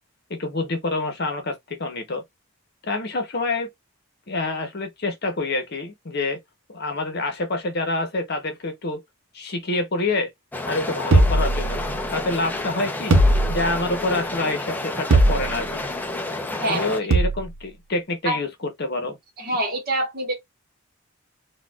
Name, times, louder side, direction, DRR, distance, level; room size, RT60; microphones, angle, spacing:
voice 1, 0.3-2.2 2.8-3.7 4.3-6.4 6.7-9.0 9.3-10.3 10.7-11.8 12.1-13.2 13.5-15.8 16.7-19.2, left 2 dB, 50° left, 0.8 m, -27 dB
sound 1, 10.5-17.0, left 2 dB, 10° left, 0.4 m, -30 dB
sound 2, 11.1-12.2 13.1-14.0 15.1-15.8 17.1-17.6, right 1 dB, 65° right, 0.6 m, -19 dB
voice 2, 19.4-20.3, right 1 dB, 45° right, 1.2 m, -25 dB
4.1 x 2.3 x 2.3 m
head